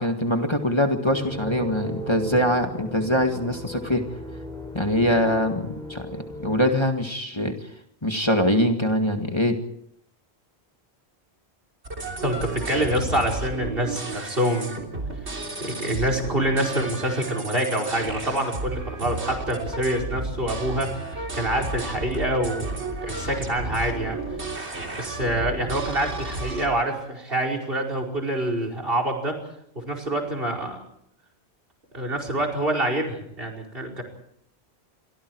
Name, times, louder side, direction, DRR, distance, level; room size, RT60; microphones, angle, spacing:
voice 1, 0.0-4.1 4.7-7.5 8.0-9.6, left 1 dB, 25° left, 4 dB, 2.0 m, -23 dB
sound 1, 1.1-6.6, right 1 dB, 5° left, 7.2 m, -36 dB
sound 2, 11.8-26.7, right 2 dB, 85° right, 3.6 m, -33 dB
voice 2, 12.2-14.9 15.3-24.2 25.0-29.4 29.8-30.8 31.9-34.0, right 1 dB, 60° right, 5 dB, 5.2 m, -26 dB
27.5 x 24.0 x 4.7 m, 0.71 s
omnidirectional pair, 1.1 m